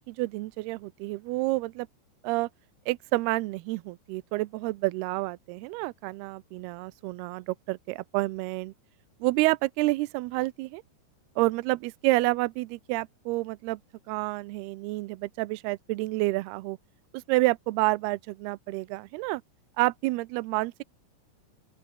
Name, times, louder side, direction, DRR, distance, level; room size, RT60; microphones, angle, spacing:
voice 1, 0.1-1.9 2.2-2.5 2.9-8.7 9.2-10.8 11.4-13.8 14.1-16.8 17.1-19.4 19.8-20.8, right 21 dB, 85° right, 2.3 m, -29 dB
open air
omnidirectional pair, 5.4 m